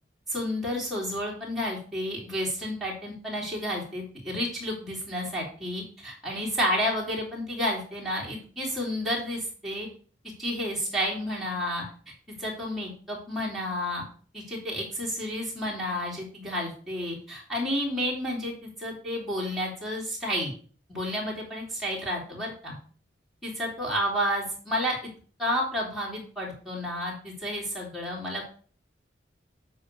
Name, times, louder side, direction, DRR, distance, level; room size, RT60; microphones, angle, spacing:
voice 1, 0.3-9.9 10.4-11.8 12.4-14.1 14.3-20.5 20.9-22.8 23.4-25.0 25.4-28.6, equal, ahead, -5 dB, 3.1 m, -31 dB
8.3 x 3.8 x 6.6 m, 0.43 s
head